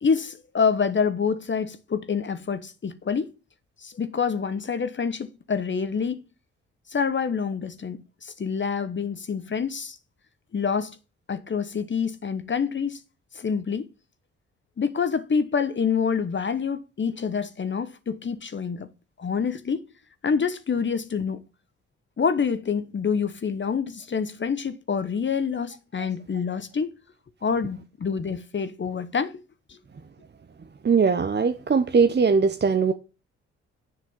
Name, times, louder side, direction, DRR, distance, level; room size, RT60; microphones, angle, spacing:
voice 1, 0.0-3.3 3.8-6.2 6.9-10.0 10.5-11.0 11.3-13.0 13.3-13.9 14.8-18.9 19.2-19.8 20.2-21.4 22.2-26.9 27.4-29.4 29.7-29.8, left 6 dB, 40° left, 1.1 m, -27 dB
voice 2, 30.8-32.9, right 5 dB, 35° right, 0.9 m, -20 dB
7.5 x 6.0 x 7.2 m
hypercardioid pair, 50°, 31 cm